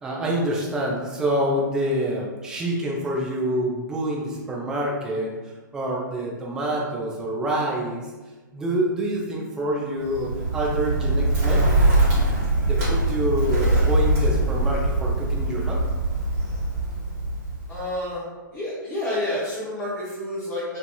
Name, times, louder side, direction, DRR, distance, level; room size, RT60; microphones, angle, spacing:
voice 1, 0.0-5.3 5.7-8.1 8.5-11.6 12.6-15.8, right 1 dB, 5° right, -3 dB, 0.3 m, -26 dB
Bird, 10.0-17.8, right 1 dB, 40° right, 1.1 m, -22 dB
voice 2, 17.7-18.3 18.5-20.8, left 1 dB, 15° left, -11 dB, 0.7 m, -29 dB
2.6 x 2.5 x 2.2 m, 1.3 s
figure-of-eight pair, 110°, 11 cm